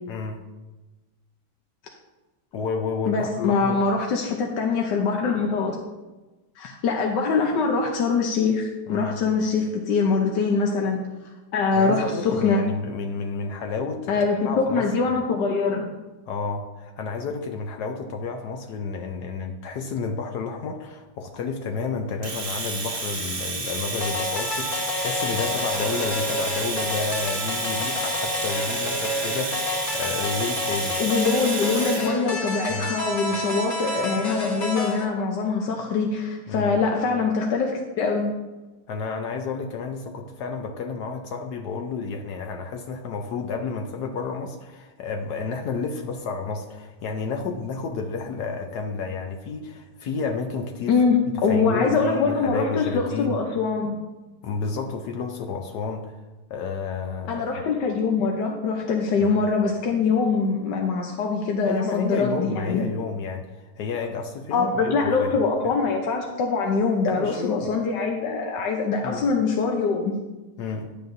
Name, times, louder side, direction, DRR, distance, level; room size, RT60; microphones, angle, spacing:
voice 1, 0.1-0.4 2.5-3.8 8.9-9.2 11.7-14.1 14.4-14.9 16.3-31.0 32.7-32.9 36.5-36.8 38.9-51.0 51.5-53.4 54.4-56.2 56.5-57.4 59.2-59.4 61.7-65.4 65.6-65.7 67.1-67.7 69.0-69.2 70.6-70.9, left 4 dB, 75° left, 4 dB, 1.2 m, -31 dB
voice 2, 3.1-5.8 6.6-11.0 11.5-12.6 14.1-15.9 31.0-38.3 50.9-54.0 57.3-62.8 64.5-70.1, left 4 dB, 90° left, 1 dB, 1.5 m, -23 dB
Domestic sounds home sounds, 22.2-32.1, right 3 dB, 40° right, 1.0 m, -30 dB
sound 1, 24.0-35.0, left 2 dB, 55° left, 2.3 m, -29 dB
11.0 x 8.5 x 2.6 m, 1.1 s
omnidirectional pair, 1.8 m